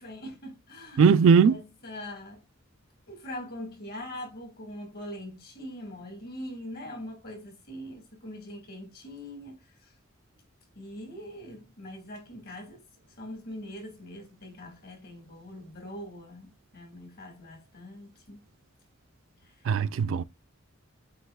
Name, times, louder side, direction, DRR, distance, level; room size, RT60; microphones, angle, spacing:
voice 1, 0.0-1.1 1.4-2.4 3.1-9.9 10.8-12.8 13.2-18.4 19.4-19.6, left 1 dB, 50° left, 1.9 m, -42 dB
voice 2, 1.0-1.6 19.7-20.2, right 6 dB, 85° right, 0.4 m, -19 dB
7.8 x 3.0 x 2.2 m
head